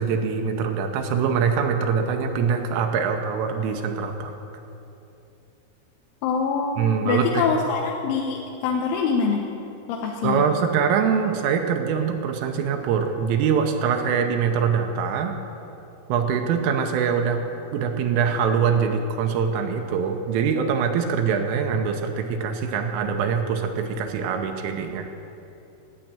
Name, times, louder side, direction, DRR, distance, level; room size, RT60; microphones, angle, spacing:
voice 1, 0.0-4.3 6.8-7.5 10.2-15.3 16.1-17.4 17.7-25.1, right 6 dB, 85° right, 4 dB, 3.4 m, -23 dB
voice 2, 6.2-9.5 9.9-10.4, left 5 dB, 85° left, 0 dB, 3.2 m, -24 dB
11.5 x 8.9 x 8.8 m, 2.8 s
omnidirectional pair, 5.8 m